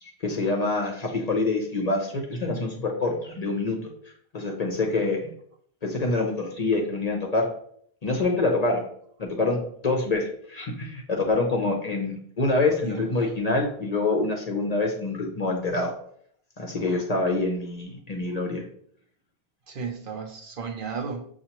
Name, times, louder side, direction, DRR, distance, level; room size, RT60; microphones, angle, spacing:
voice 1, 0.0-3.9 4.3-5.3 5.8-7.5 8.0-8.8 9.2-15.9 16.6-18.6, left 2 dB, 45° left, 1 dB, 0.7 m, -26 dB
voice 2, 12.8-13.3 19.7-21.3, right 5 dB, 60° right, 3 dB, 0.7 m, -34 dB
6.6 x 2.4 x 2.9 m, 0.63 s
omnidirectional pair, 1.1 m